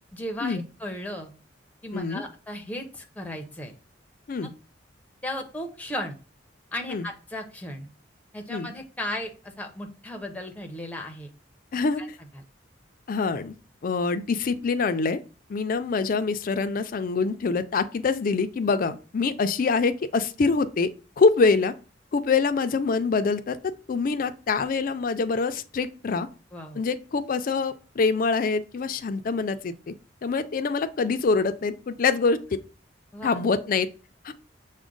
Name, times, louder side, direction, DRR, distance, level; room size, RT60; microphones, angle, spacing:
voice 1, 0.1-1.3 1.8-3.7 5.2-6.2 6.7-7.9 8.3-11.3 12.0-12.1 12.3-12.4 26.5-26.8 33.1-33.4, left 1 dB, 10° left, 4 dB, 0.6 m, -35 dB
voice 2, 1.9-2.2 4.3-4.5 6.9-7.1 8.5-8.7 11.7-12.2 13.1-13.5 13.8-15.2 15.5-20.9 21.2-21.7 22.1-26.3 26.8-29.9 30.2-32.6 33.2-33.9 34.2-34.3, left 4 dB, 45° left, 10 dB, 0.4 m, -25 dB
6.0 x 2.1 x 3.8 m, 0.35 s
head